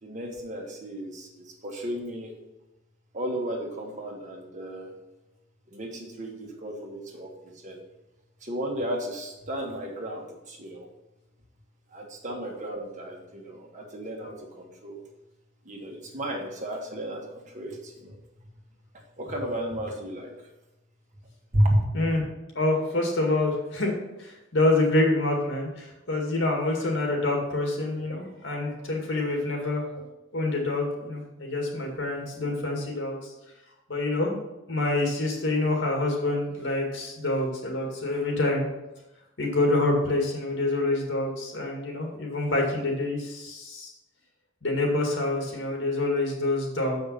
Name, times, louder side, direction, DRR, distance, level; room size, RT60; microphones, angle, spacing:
voice 1, 0.0-2.3 3.1-4.9 5.7-7.8 8.4-10.9 11.9-15.0 15.6-18.2 19.2-20.5 21.5-21.8, equal, 40° right, 0 dB, 1.5 m, -32 dB
voice 2, 22.5-29.9 30.3-33.3 33.9-34.4 34.7-38.7 39.4-43.9 44.6-47.0, left 2 dB, 65° left, 1 dB, 2.1 m, -26 dB
7.1 x 5.8 x 5.6 m, 0.96 s
head